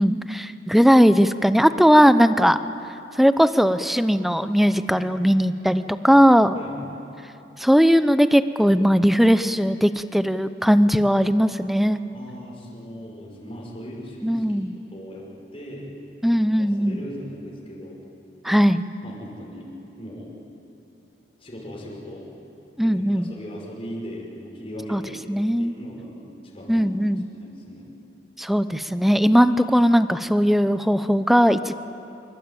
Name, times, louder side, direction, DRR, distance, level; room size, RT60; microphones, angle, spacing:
voice 1, 0.0-2.6 3.2-6.6 7.6-12.0 14.2-14.7 16.2-17.0 18.4-18.8 22.8-23.3 24.9-25.0 25.3-25.7 26.7-27.2 28.4-31.7, equal, ahead, 12 dB, 0.7 m, -18 dB
voice 2, 6.5-6.9 12.1-14.4 14.7-15.3 15.5-15.9 16.6-18.0 19.0-19.7 20.0-20.3 21.4-22.3 22.8-26.1 26.4-26.9 27.3-27.9, equal, 35° left, -3 dB, 5.7 m, -38 dB
26.5 x 23.0 x 9.0 m, 2.9 s
head